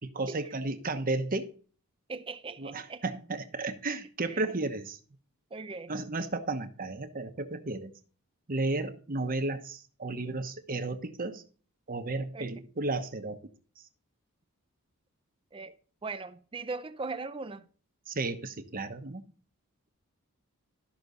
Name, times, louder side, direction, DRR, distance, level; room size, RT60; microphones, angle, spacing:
voice 1, 0.0-1.5 2.6-5.0 5.9-7.9 8.5-11.4 11.9-13.4 18.1-19.2, right 2 dB, 40° right, 1.1 m, -33 dB
voice 2, 2.1-3.0 4.2-4.4 5.5-5.9 12.3-12.6 15.5-15.7 16.0-17.7, right 3 dB, 25° right, 0.5 m, -39 dB
13.0 x 6.1 x 3.9 m
head